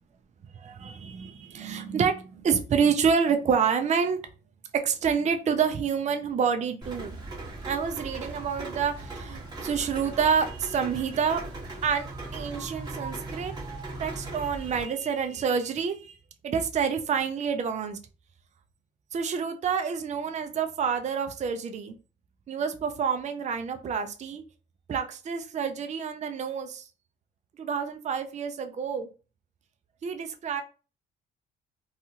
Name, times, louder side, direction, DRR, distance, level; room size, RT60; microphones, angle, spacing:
voice 1, 0.5-4.2 4.7-7.2 7.6-11.4 11.8-13.5 14.0-16.2 16.4-18.0 19.1-21.9 22.5-24.4 24.9-26.9 27.6-29.1 30.0-30.6, right 6 dB, 35° right, 7 dB, 0.4 m, -28 dB
Rain, 6.8-14.8, right 2 dB, 20° right, 1.3 m, -38 dB
2.7 x 2.3 x 2.8 m, 0.35 s
cardioid pair, 90°, 20 cm